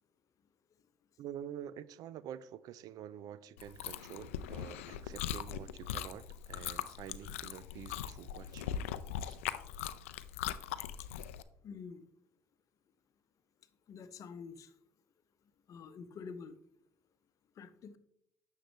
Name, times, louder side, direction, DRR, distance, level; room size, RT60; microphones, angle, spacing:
voice 1, 1.2-8.8 9.2-9.4, right 10 dB, 60° right, 0.4 m, -47 dB
Chewing mastication, 3.6-11.4, left 10 dB, 85° left, 0.4 m, -40 dB
voice 2, 11.6-12.0 13.9-14.7 15.7-16.5 17.6-18.0, left 5 dB, 50° left, 0.8 m, -47 dB
9.9 x 6.5 x 3.2 m
hypercardioid pair, 65°, 7 cm